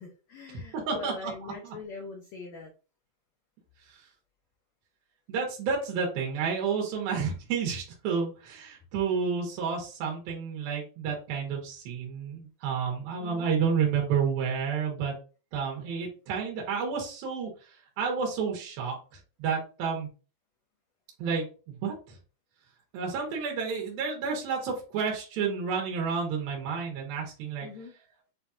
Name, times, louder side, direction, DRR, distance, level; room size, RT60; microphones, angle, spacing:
voice 1, 0.0-2.7 13.2-13.5 27.6-27.9, left 3 dB, 85° left, 0 dB, 1.5 m, -42 dB
voice 2, 0.5-1.3 5.3-15.1 15.5-17.5 18.0-19.0 19.4-20.1 21.2-22.2 22.9-27.7, right 6 dB, 80° right, 0 dB, 3.0 m, -30 dB
7.2 x 2.9 x 2.4 m, 0.35 s
omnidirectional pair, 4.2 m